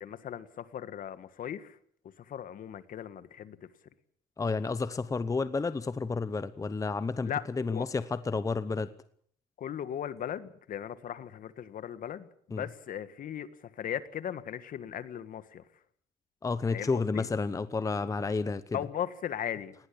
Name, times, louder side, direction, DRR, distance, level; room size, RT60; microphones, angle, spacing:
voice 1, 0.0-1.8 2.2-3.6 7.3-7.4 7.7-7.8 9.6-13.5 13.8-15.6 16.7-17.3 18.7-19.7, left 9 dB, 55° left, 13 dB, 1.7 m, -37 dB
voice 2, 4.4-8.9 12.5-12.7 16.4-18.8, left 4 dB, 20° left, 14 dB, 0.9 m, -31 dB
19.5 x 18.0 x 8.6 m, 0.62 s
cardioid pair, 110°, 17 cm